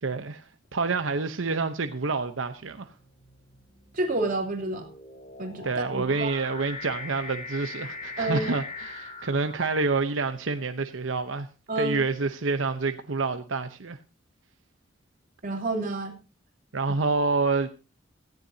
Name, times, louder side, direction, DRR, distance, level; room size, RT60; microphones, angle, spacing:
voice 1, 0.0-2.9 5.6-11.5 11.8-14.0 16.7-17.7, right 3 dB, 90° right, 0.9 m, -28 dB
sound 1, 0.7-1.1 2.0-10.2, left 3 dB, 40° left, 3.2 m, -42 dB
voice 2, 3.9-4.9 5.4-6.3 8.2-8.5 11.7-12.0 15.4-16.1, right 2 dB, 45° right, 3.3 m, -29 dB
17.0 x 14.5 x 2.8 m
head